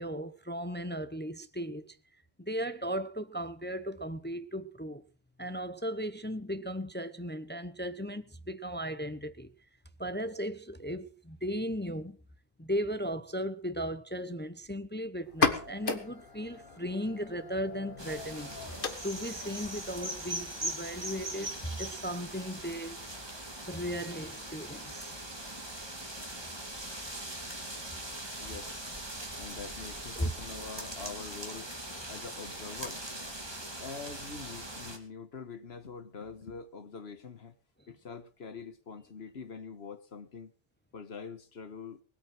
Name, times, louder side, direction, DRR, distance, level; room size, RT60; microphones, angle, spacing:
voice 1, 0.0-2.0 2.4-5.0 5.4-9.5 10.0-12.2 12.6-18.5 19.0-23.0 23.7-25.2 30.2-30.3 33.6-33.7, equal, 10° left, 0.7 m, -36 dB
sound 1, 15.2-22.7, left 4 dB, 60° left, 1.7 m, -37 dB
sound 2, 18.0-35.0, right 1 dB, 25° right, 2.6 m, -41 dB
voice 2, 28.4-28.7 29.4-31.7 32.1-37.5 37.9-40.5 40.9-42.0, left 5 dB, 90° left, 1.6 m, -44 dB
20.0 x 8.9 x 6.0 m
omnidirectional pair, 1.0 m